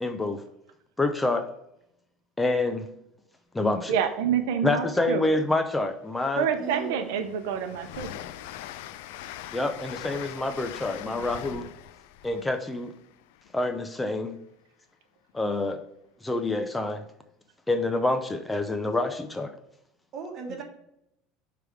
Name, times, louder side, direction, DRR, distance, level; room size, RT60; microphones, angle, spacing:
voice 1, 0.0-0.4 1.0-1.5 2.4-2.9 3.5-3.9 4.6-6.5 9.5-11.7 12.2-12.9 13.5-14.4 15.3-15.8 16.2-17.0 17.7-19.5, left 2 dB, 10° left, 8 dB, 0.4 m, -27 dB
voice 2, 3.9-5.2 6.4-8.1 20.5-20.6, right 8 dB, 85° right, 7 dB, 0.6 m, -27 dB
Train, 5.8-5.9 6.3-14.0, left 12 dB, 85° left, 0.3 m, -42 dB
voice 3, 6.6-7.1 20.1-20.6, right 3 dB, 45° right, 1 dB, 1.6 m, -36 dB
6.1 x 3.4 x 4.8 m, 0.80 s
cardioid pair, 140°, 0 cm